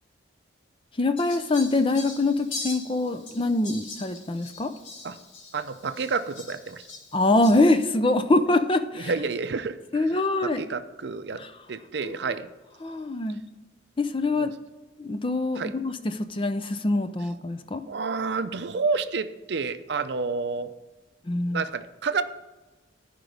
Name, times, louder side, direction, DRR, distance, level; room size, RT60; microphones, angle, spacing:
voice 1, 1.0-4.7 7.1-9.1 9.9-10.6 11.3-11.5 12.0-12.1 12.8-13.4 14.0-14.5 15.0-17.8 21.3-21.6, left 2 dB, 25° left, 10 dB, 0.5 m, -24 dB
Fowl, 1.2-7.8, left 3 dB, 80° left, 2.1 m, -41 dB
voice 2, 5.5-6.8 8.9-11.4 11.7-12.5 14.4-14.5 15.6-15.7 17.9-20.7 21.5-22.2, right 4 dB, 60° right, 11 dB, 0.5 m, -30 dB
14.5 x 5.2 x 3.4 m, 1.2 s
head